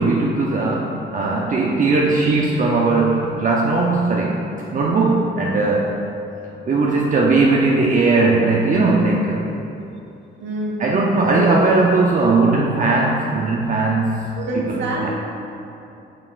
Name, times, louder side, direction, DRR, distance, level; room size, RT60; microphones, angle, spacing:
voice 1, 0.0-4.4 4.7-5.9 6.7-9.5 10.8-14.3 14.5-15.1, right 3 dB, 40° right, -3 dB, 0.6 m, -18 dB
voice 2, 10.4-10.8 14.3-15.2, right 2 dB, 65° right, -3 dB, 1.3 m, -26 dB
6.7 x 6.1 x 2.5 m, 2.8 s
cardioid pair, 90°, 20 cm